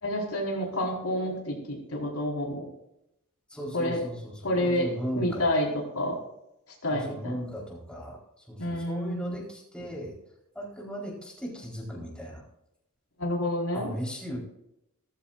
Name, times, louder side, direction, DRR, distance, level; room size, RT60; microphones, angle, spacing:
voice 1, 0.0-2.7 3.7-4.0 4.4-4.9 5.1-6.2 6.7-7.4 8.6-9.3 13.2-13.9, left 1 dB, 70° left, -1 dB, 4.4 m, -29 dB
voice 2, 3.5-5.5 6.9-8.2 8.5-10.1 10.5-12.4 13.7-14.4, equal, 5° left, -4 dB, 4.0 m, -37 dB
17.5 x 15.0 x 2.5 m, 0.83 s
head